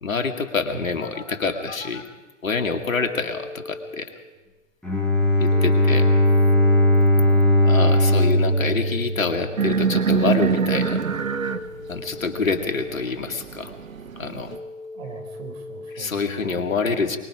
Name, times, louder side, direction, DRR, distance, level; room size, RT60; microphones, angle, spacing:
voice 1, 0.0-2.0 2.4-4.1 5.4-6.2 7.6-11.0 11.9-13.7 14.2-14.5 15.9-17.2, left 4 dB, 75° left, 6 dB, 2.4 m, -26 dB
Telephone, 1.0-2.0 2.5-4.0 5.5-7.0 8.5-10.0 11.5-13.0 14.5-16.0, left 2 dB, 60° left, 5.0 m, -38 dB
Bowed string instrument, 4.8-9.8, left 1 dB, 5° left, 6.5 m, -18 dB
voice 2, 7.1-7.6 14.9-17.2, right 6 dB, 50° right, 5 dB, 4.5 m, -41 dB
sound 1, 9.6-14.6, right 6 dB, 80° right, 1.2 m, -25 dB
24.5 x 22.5 x 5.0 m, 1.2 s
figure-of-eight pair, 110°, 40 cm